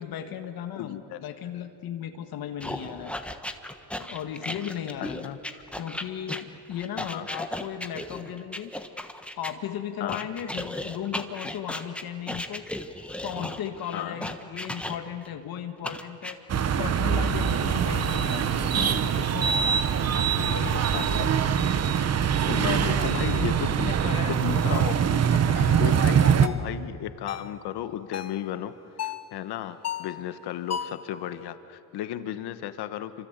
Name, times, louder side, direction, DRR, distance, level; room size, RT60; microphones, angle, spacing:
voice 1, 0.0-3.1 4.0-5.3 5.8-8.7 9.4-12.7 13.2-16.4 16.8-19.6 20.1-21.5 22.5-23.5 23.8-25.8, left 9 dB, 65° left, 6 dB, 1.7 m, -36 dB
voice 2, 0.8-1.2 5.2-5.4 7.1-7.3 10.0-10.3 13.9-14.2 20.9-21.3 22.5-23.9 24.3-25.4 25.8-28.7 29.0-33.3, left 11 dB, 80° left, 11 dB, 1.4 m, -34 dB
sound 1, 2.6-9.5 10.1-15.3 15.8-16.3, left 1 dB, 5° left, 1.3 m, -35 dB
sound 2, 16.5-26.5, right 8 dB, 40° right, 1.1 m, -23 dB
sound 3, 24.7-24.9 25.6-25.8 26.4-26.7 27.3-27.5 28.1-28.4 29.0-29.3 29.8-30.2 30.7-31.1, left 8 dB, 40° left, 1.0 m, -34 dB
28.0 x 25.5 x 8.2 m, 2.9 s
cardioid pair, 135°, 39 cm